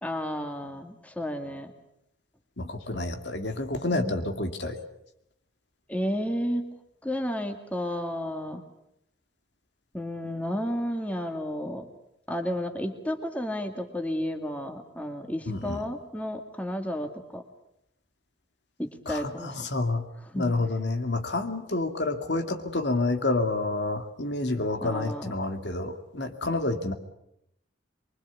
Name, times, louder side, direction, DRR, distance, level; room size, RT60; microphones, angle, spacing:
voice 1, 0.0-1.7 3.9-4.2 5.9-6.7 7.0-8.6 9.9-11.8 12.3-17.4 18.8-19.6 20.3-20.5 24.8-25.3, equal, 5° left, 5 dB, 2.2 m, -32 dB
voice 2, 2.6-4.8 15.5-15.8 19.1-20.0 20.3-26.9, left 2 dB, 70° left, 6 dB, 2.4 m, -29 dB
25.0 x 24.0 x 8.4 m, 0.78 s
head